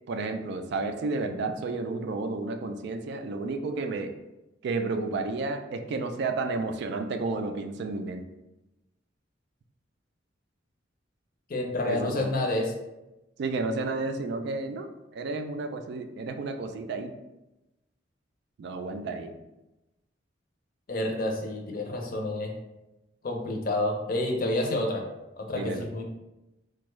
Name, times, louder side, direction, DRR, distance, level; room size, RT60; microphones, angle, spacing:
voice 1, 0.1-4.1 4.6-8.2 11.8-12.3 13.4-17.1 18.6-19.3 25.5-25.9, right 3 dB, 60° right, 6 dB, 0.3 m, -31 dB
voice 2, 11.5-12.7 20.9-22.5 23.2-25.0 25.4-26.1, left 1 dB, 50° left, 2 dB, 0.5 m, -29 dB
3.4 x 2.2 x 3.1 m, 0.98 s
head